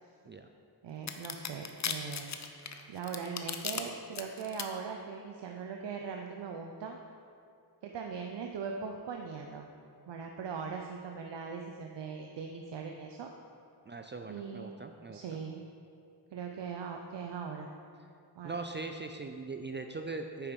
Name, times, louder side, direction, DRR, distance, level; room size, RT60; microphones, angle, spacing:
voice 1, 0.8-2.3 2.9-7.0 7.8-9.7 10.1-13.3 14.3-14.7 15.1-15.6 16.3-17.7 18.4-18.6, right 5 dB, 80° right, 2 dB, 0.7 m, -40 dB
sound 1, 1.1-3.8 4.2-4.6, left 7 dB, 45° left, 0.6 m, -36 dB
voice 2, 13.9-15.2 18.4-20.5, right 3 dB, 30° right, 5 dB, 0.3 m, -40 dB
9.3 x 7.1 x 5.3 m, 2.5 s
wide cardioid pair, 170°, 41 cm